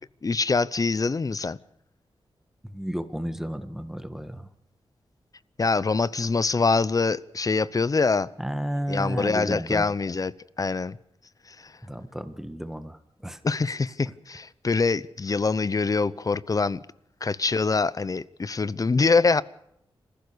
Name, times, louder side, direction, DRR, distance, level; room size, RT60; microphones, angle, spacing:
voice 1, 0.2-1.6 5.6-8.3 8.9-11.0 11.5-11.7 13.4-16.8 17.2-19.4, left 4 dB, 40° left, 0.8 m, -24 dB
voice 2, 2.6-4.5 8.4-9.9 11.8-13.4, equal, 5° right, 1.6 m, -32 dB
28.0 x 15.5 x 6.9 m
wide cardioid pair, 85°, 9 cm